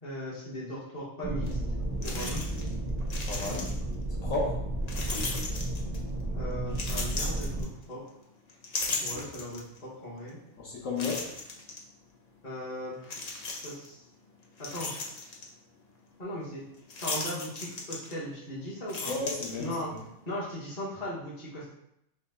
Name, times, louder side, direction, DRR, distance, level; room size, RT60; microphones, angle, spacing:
voice 1, 0.0-2.4 6.3-7.6 7.9-8.0 9.0-10.4 12.4-12.9 13.6-14.0 14.7-14.9 16.2-16.6 16.9-19.1 19.6-19.9 20.3-21.7, equal, 30° left, -7 dB, 1.3 m, -38 dB
sound 1, 1.2-7.6, right 1 dB, 25° right, 0.4 m, -33 dB
sound 2, 1.5-1.6 2.0-2.7 3.0-3.9 4.9-6.1 6.7-8.1 8.5-9.8 10.3-10.4 11.0-11.8 13.0-13.9 14.3-15.5 16.9-18.4 18.7-20.0, left 3 dB, 50° left, 0.5 m, -36 dB
voice 2, 3.3-3.7 4.1-4.6 10.6-11.3 19.1-20.0, left 3 dB, 70° left, -5 dB, 1.2 m, -33 dB
4.4 x 2.3 x 4.0 m, 0.79 s
omnidirectional pair, 1.4 m